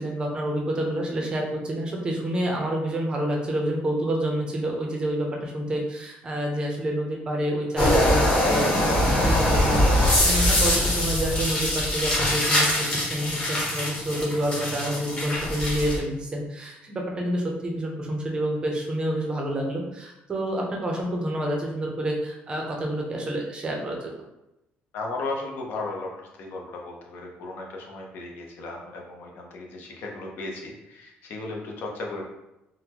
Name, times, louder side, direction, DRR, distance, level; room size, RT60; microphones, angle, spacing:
voice 1, 0.0-24.1, right 1 dB, 25° right, 0 dB, 0.6 m, -28 dB
sound 1, 7.8-16.0, left 1 dB, 30° left, 1.0 m, -23 dB
voice 2, 24.9-32.2, left 2 dB, 60° left, 0 dB, 0.7 m, -35 dB
3.8 x 2.1 x 2.9 m, 0.92 s
cardioid pair, 155°, 4 cm